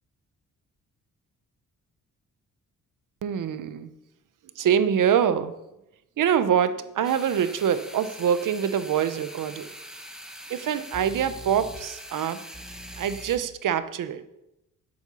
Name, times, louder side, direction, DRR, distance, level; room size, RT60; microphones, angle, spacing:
voice 1, 3.2-3.9 4.6-5.5 6.2-9.7 10.5-12.4 13.0-14.2, right 8 dB, 75° right, 12 dB, 0.9 m, -25 dB
sound 1, 7.0-13.4, equal, ahead, 1.2 m, -42 dB
10.5 x 8.0 x 7.0 m, 0.91 s
wide cardioid pair, 160°, 32 cm